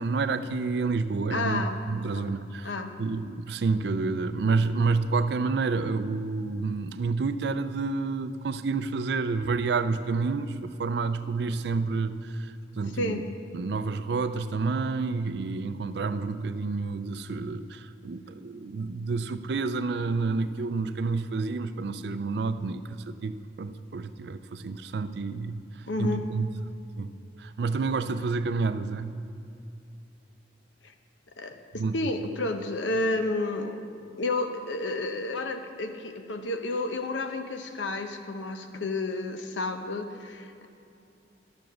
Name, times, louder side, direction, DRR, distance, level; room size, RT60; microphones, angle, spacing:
voice 1, 0.0-1.6 1.9-2.7 3.0-13.2 13.5-25.6 26.0-26.5 27.0-29.2 31.8-31.9, right 4 dB, 60° right, 12 dB, 0.4 m, -29 dB
voice 2, 1.3-1.8 2.1-2.3 2.6-2.9 12.9-13.3 25.9-26.2 30.8-30.9 31.4-33.8 34.2-40.7, left 2 dB, 80° left, 6 dB, 0.8 m, -31 dB
12.5 x 7.0 x 6.1 m, 2.6 s
head